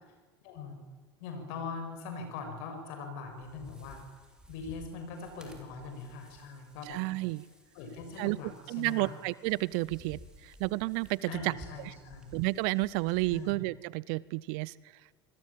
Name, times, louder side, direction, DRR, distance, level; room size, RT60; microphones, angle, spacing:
voice 1, 0.4-0.8 1.2-4.0 4.5-7.0 7.7-8.5 8.8-9.1 11.3-12.3 13.3-13.6, left 4 dB, 60° left, 7 dB, 7.9 m, -41 dB
sound 1, 3.2-13.5, right 1 dB, 5° right, 5.5 m, -55 dB
voice 2, 6.9-7.4 8.2-8.4 8.7-11.5 12.3-14.7, right 22 dB, 55° right, 22 dB, 0.8 m, -31 dB
27.0 x 21.0 x 9.1 m, 1.4 s
figure-of-eight pair, 75°, 14 cm